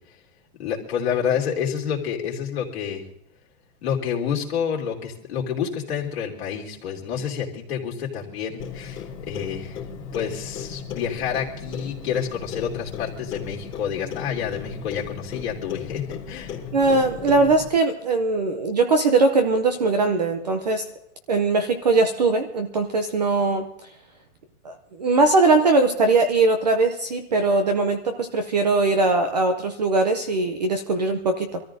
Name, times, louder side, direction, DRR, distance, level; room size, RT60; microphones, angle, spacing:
voice 1, 0.6-3.0 3.8-9.8 10.1-16.5, left 8 dB, 40° left, -2 dB, 3.2 m, -28 dB
Clock, 8.6-17.7, left 6 dB, 10° left, 3.4 m, -36 dB
voice 2, 16.7-20.8 21.3-23.7 24.6-31.6, right 3 dB, 30° right, 7 dB, 0.6 m, -20 dB
26.0 x 14.0 x 2.7 m, 0.78 s
hypercardioid pair, 175°, 46 cm